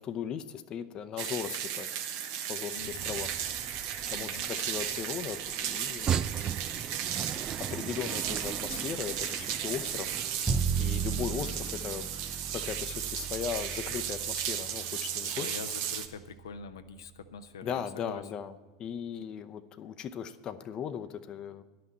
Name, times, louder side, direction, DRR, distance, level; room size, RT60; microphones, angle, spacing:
voice 1, 0.0-1.9 2.5-3.3 4.1-6.6 7.6-10.1 10.8-12.1 12.5-15.6 17.6-21.6, left 8 dB, 35° left, 9 dB, 0.7 m, -38 dB
sound 1, 1.2-16.1, right 9 dB, 60° right, 1.0 m, -35 dB
voice 2, 2.7-3.3 4.1-4.4 10.8-11.1 15.2-18.2, left 5 dB, 80° left, 8 dB, 0.7 m, -45 dB
sound 2, 2.8-10.6, right 8 dB, 30° right, 0.4 m, -38 dB
Bowed string instrument, 10.5-16.6, right 6 dB, 10° right, 0.7 m, -35 dB
11.0 x 6.0 x 8.5 m, 1.3 s
hypercardioid pair, 90°, 2 cm